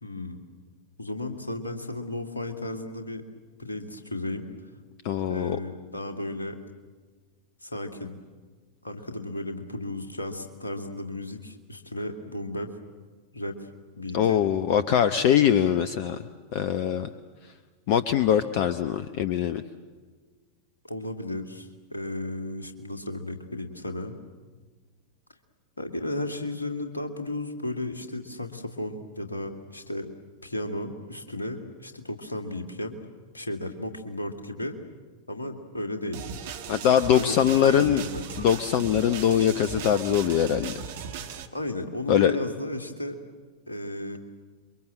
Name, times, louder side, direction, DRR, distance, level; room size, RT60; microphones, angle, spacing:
voice 1, 0.0-0.4 1.0-3.2 3.6-4.5 5.3-6.6 7.6-8.2 8.8-12.7 13.3-13.6 13.9-14.4 20.8-24.2 25.8-30.1 30.4-33.0 33.3-34.8 35.3-36.2 37.2-38.3 41.5-43.2 43.7-44.2, left 1 dB, 80° left, 5 dB, 2.2 m, -34 dB
voice 2, 5.0-5.6 14.1-16.2 16.5-17.1 17.9-19.6 36.7-38.0 38.4-40.7 42.1-42.4, left 9 dB, 45° left, 13 dB, 0.9 m, -22 dB
sound 1, 36.1-41.5, right 7 dB, 55° right, 1.7 m, -37 dB
28.0 x 23.5 x 7.7 m, 1.4 s
figure-of-eight pair, 90°, 0 cm